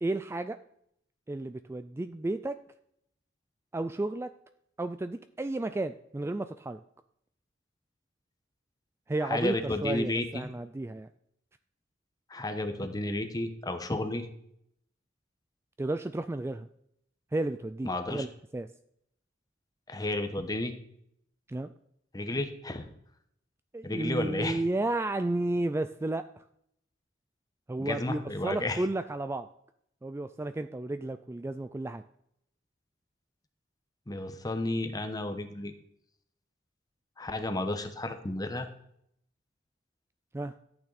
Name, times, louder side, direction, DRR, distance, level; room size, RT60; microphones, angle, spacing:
voice 1, 0.0-0.6 1.3-2.6 3.7-4.3 4.8-6.8 9.1-11.1 15.8-16.7 17.3-18.3 18.5-18.7 21.5-21.7 23.7-26.4 27.7-29.5 30.0-32.0 40.3-40.5, right 2 dB, 15° right, 11 dB, 0.3 m, -32 dB
voice 2, 9.2-10.5 12.3-14.3 17.8-18.2 19.9-20.7 22.1-22.9 23.8-24.6 27.8-28.8 34.1-35.7 37.2-38.7, left 2 dB, 20° left, 7 dB, 1.1 m, -32 dB
13.5 x 8.9 x 4.1 m, 0.73 s
head